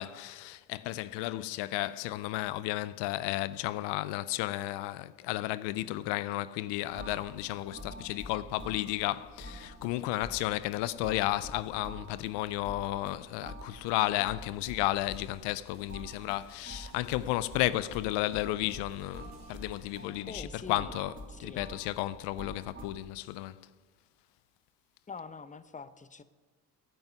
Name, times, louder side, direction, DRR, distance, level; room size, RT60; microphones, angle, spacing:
voice 1, 0.0-21.1 21.4-23.7, left 16 dB, 85° left, 0.5 m, -33 dB
sound 1, 6.9-22.8, equal, 30° right, 3.0 m, -47 dB
sound 2, 14.5-24.4, right 5 dB, 75° right, 3.6 m, -66 dB
voice 2, 20.2-21.0 21.3-21.6 25.1-26.2, left 5 dB, 20° left, 0.8 m, -44 dB
9.3 x 9.2 x 9.6 m
supercardioid pair, 70°, 41 cm